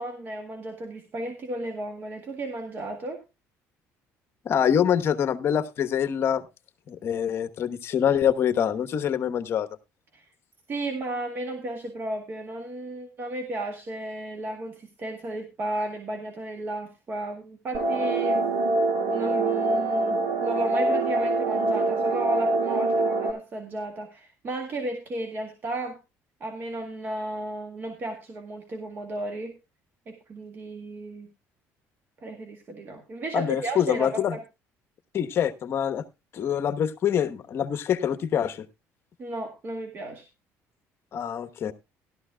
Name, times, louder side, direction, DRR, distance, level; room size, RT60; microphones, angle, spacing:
voice 1, 0.0-3.2 10.1-10.2 10.7-18.5 19.1-26.0 26.4-29.6 30.1-31.3 32.2-34.4 39.2-40.3, right 1 dB, 35° right, 5 dB, 1.9 m, -34 dB
voice 2, 4.4-6.4 6.9-9.7 33.3-34.4 35.1-36.0 36.3-38.7 41.1-41.7, left 9 dB, 45° left, 10 dB, 1.0 m, -25 dB
sound 1, 17.7-23.3, right 2 dB, 65° right, 2.1 m, -24 dB
16.0 x 12.5 x 2.2 m, 0.24 s
cardioid pair, 140°, 6 cm